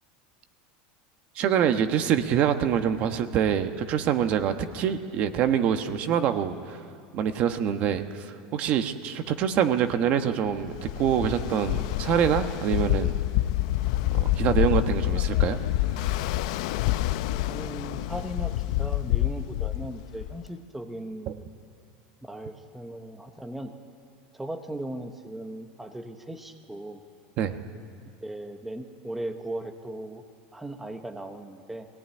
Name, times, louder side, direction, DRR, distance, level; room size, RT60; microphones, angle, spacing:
voice 1, 1.3-13.1 14.1-15.6 15.9-16.1 21.3-21.4 27.4-27.6, right 9 dB, 40° right, 8 dB, 1.2 m, -25 dB
Ocean, 10.6-20.5, left 15 dB, 70° left, 0.6 m, -27 dB
voice 2, 17.5-21.4 22.2-23.7 24.3-27.0 28.2-30.2 30.5-31.9, right 1 dB, 5° right, 5 dB, 0.9 m, -38 dB
21.5 x 18.0 x 9.8 m, 2.4 s
supercardioid pair, 165°, 4 cm